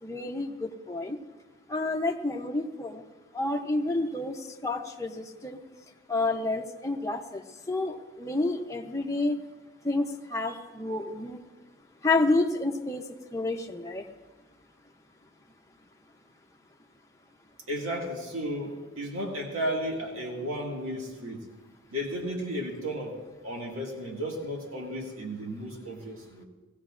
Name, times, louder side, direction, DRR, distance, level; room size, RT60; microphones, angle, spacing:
voice 1, 0.0-1.2 1.7-3.0 3.3-5.6 6.1-9.4 9.8-11.4 12.0-13.1 13.3-14.0, left 2 dB, 15° left, 2 dB, 0.7 m, -29 dB
voice 2, 17.7-21.4 21.9-23.2 23.4-26.5, equal, 85° right, -1 dB, 2.1 m, -34 dB
19.0 x 16.0 x 2.5 m, 1.3 s
head